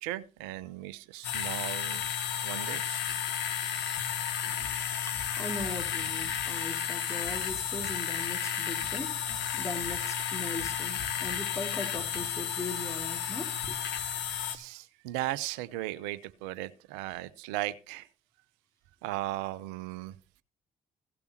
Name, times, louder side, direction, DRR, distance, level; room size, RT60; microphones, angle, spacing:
voice 1, 0.0-2.0 2.4-3.1 14.4-18.1 19.0-20.2, right 15 dB, 80° right, 18 dB, 0.8 m, -37 dB
sound 1, 1.2-14.6, left 8 dB, 70° left, 1.9 m, -33 dB
voice 2, 5.0-9.2 9.5-13.8, left 2 dB, 15° left, 3 dB, 4.5 m, -39 dB
16.5 x 7.0 x 4.4 m, 0.35 s
hypercardioid pair, 45°, 18 cm